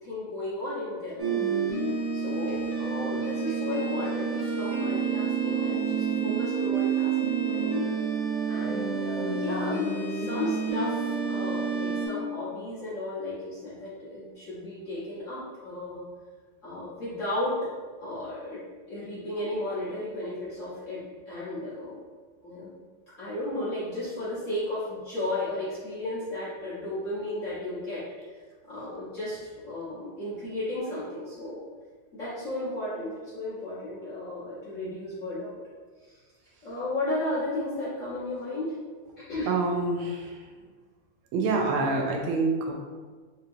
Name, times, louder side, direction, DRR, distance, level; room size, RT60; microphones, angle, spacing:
voice 1, 0.0-1.4 2.1-7.8 8.5-16.0 16.6-17.6 18.0-18.6 18.9-22.0 22.4-22.8 23.2-28.0 28.7-31.6 32.1-35.6 36.0-36.2 36.6-38.8 39.2-39.5, left 1 dB, 50° left, -10 dB, 1.1 m, -34 dB
sound 1, 1.2-12.1, right 5 dB, 60° right, 0.3 m, -28 dB
voice 2, 39.5-40.5 41.3-42.7, right 3 dB, 90° right, 1 dB, 1.5 m, -27 dB
3.6 x 2.9 x 2.6 m, 1.4 s
omnidirectional pair, 2.3 m